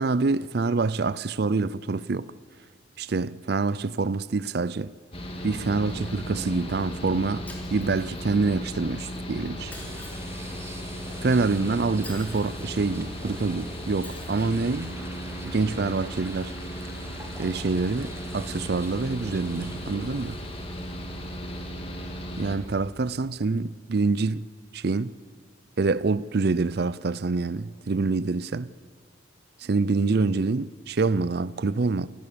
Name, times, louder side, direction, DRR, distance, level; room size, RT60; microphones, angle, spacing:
voice 1, 0.0-2.3 3.0-4.9 5.4-9.7 11.2-15.0 15.4-16.5 17.4-20.4 22.4-24.4 24.7-25.1 25.8-28.7 29.6-32.1, right 3 dB, 50° right, 0.5 m, -26 dB
Mechanical fan, 5.1-22.6, equal, 30° left, 2.3 m, -36 dB
Shatter, 7.5-8.5 9.7-10.4 12.0-12.7 14.0-14.6, left 2 dB, 10° left, 3.3 m, -46 dB
sound 1, 9.7-21.9 22.3-22.5 24.8-24.9, right 2 dB, 15° right, 1.1 m, -46 dB
28.0 x 18.0 x 6.9 m
head